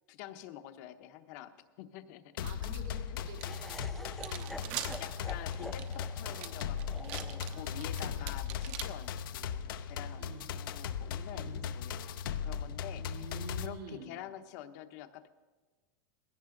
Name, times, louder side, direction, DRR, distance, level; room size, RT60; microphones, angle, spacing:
voice 1, 0.1-2.4 3.1-3.2 5.0-10.3 10.5-13.3 13.6-15.3, left 12 dB, 50° left, 10 dB, 1.0 m, -48 dB
sound 1, 2.4-13.7, left 7 dB, 75° left, 0.8 m, -38 dB
voice 2, 2.4-5.4 7.4-8.2 10.2-10.5 11.3-11.6 12.9-14.1, right 3 dB, 75° right, 1 dB, 3.4 m, -49 dB
Laughter, 3.4-9.5, left 1 dB, ahead, 0.4 m, -49 dB
sound 2, 3.4-3.5 4.0-8.8, right 11 dB, 45° right, 1.0 m, -42 dB
20.0 x 16.5 x 3.9 m, 1.4 s
supercardioid pair, 165°, 11 cm